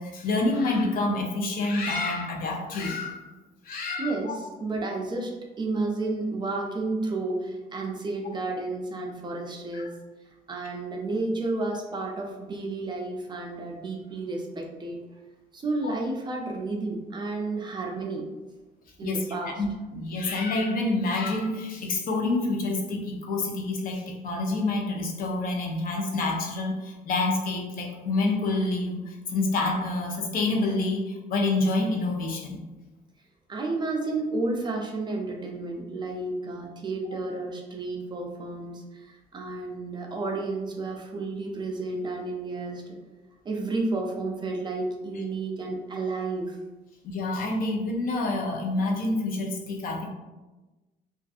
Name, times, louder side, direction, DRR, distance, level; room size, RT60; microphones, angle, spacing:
voice 1, 0.0-3.3 3.6-4.3 9.7-9.9 19.0-19.2 19.6-32.6 47.0-50.1, left 2 dB, 55° left, 0 dB, 0.6 m, -27 dB
voice 2, 4.0-5.3 5.6-9.9 10.5-15.0 15.5-18.3 19.0-19.6 33.5-43.0 43.4-46.6, right 2 dB, 25° right, 0 dB, 0.4 m, -31 dB
2.5 x 2.3 x 2.4 m, 1.1 s
cardioid pair, 110°, 17 cm